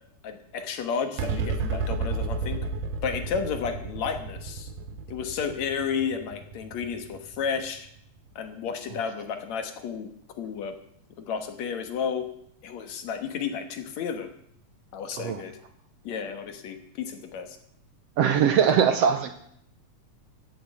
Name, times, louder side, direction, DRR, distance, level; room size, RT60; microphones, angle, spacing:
voice 1, 0.2-2.6 3.0-4.7 5.1-7.9 8.4-10.1 10.4-10.7 11.2-12.3 12.6-14.3 14.9-15.5 16.0-17.6, left 6 dB, 65° left, 7 dB, 2.5 m, -32 dB
sound 1, 1.2-7.9, right 4 dB, 90° right, 2.6 m, -32 dB
voice 2, 18.2-19.3, right 8 dB, 70° right, 8 dB, 1.7 m, -21 dB
14.5 x 7.9 x 7.8 m, 0.69 s
omnidirectional pair, 3.5 m